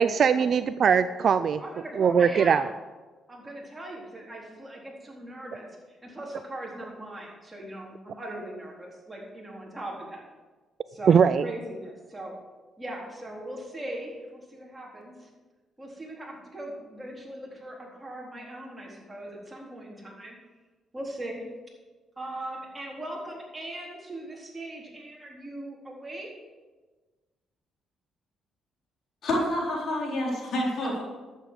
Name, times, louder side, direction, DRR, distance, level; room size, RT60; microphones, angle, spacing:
voice 1, 0.0-1.6 2.0-2.6 11.1-11.4, right 7 dB, 55° right, 12 dB, 0.4 m, -21 dB
voice 2, 1.6-2.7 3.3-10.2 10.9-12.3 12.8-15.3 15.8-20.4 20.9-21.5 22.2-26.3 30.8-31.0, right 1 dB, 15° right, -3 dB, 4.0 m, -39 dB
voice 3, 29.2-31.0, left 1 dB, 65° left, -2 dB, 3.9 m, -28 dB
11.5 x 8.1 x 6.4 m, 1.3 s
cardioid pair, 90°, 0 cm